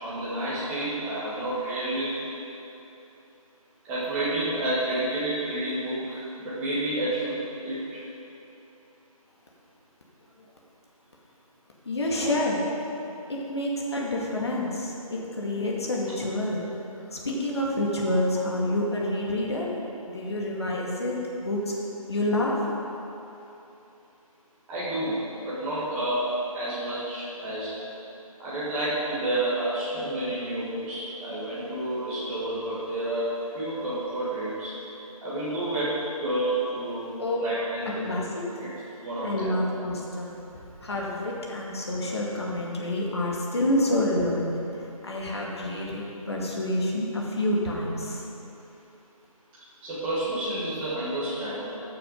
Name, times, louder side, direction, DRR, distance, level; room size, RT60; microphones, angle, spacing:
voice 1, 0.0-2.2 3.8-7.8 12.2-12.4 24.7-27.8 28.4-34.7 35.2-38.0 38.6-38.7 39.0-39.5 49.8-51.7, right 1 dB, 5° right, -11 dB, 1.6 m, -30 dB
voice 2, 11.9-12.6 13.3-16.6 17.1-19.7 20.0-21.7 22.1-22.6 37.2-37.4 37.9-38.4 39.2-40.3 40.8-48.2, left 1 dB, 45° left, -3 dB, 2.0 m, -28 dB
13.5 x 6.9 x 5.3 m, 3.0 s
figure-of-eight pair, 170°, 19 cm